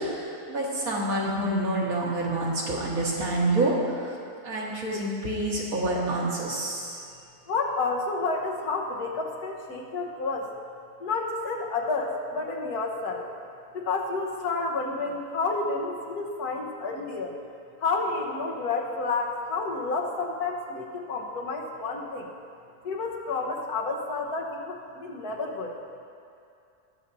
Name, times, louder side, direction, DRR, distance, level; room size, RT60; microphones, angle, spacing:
voice 1, 0.0-4.1 4.4-7.1, right 1 dB, 70° right, -4 dB, 2.0 m, -27 dB
voice 2, 7.5-10.5 11.0-13.3 13.7-17.3 17.8-22.3 22.8-25.7, left 3 dB, 80° left, 0 dB, 1.6 m, -30 dB
20.0 x 6.7 x 2.7 m, 2.5 s
omnidirectional pair, 1.6 m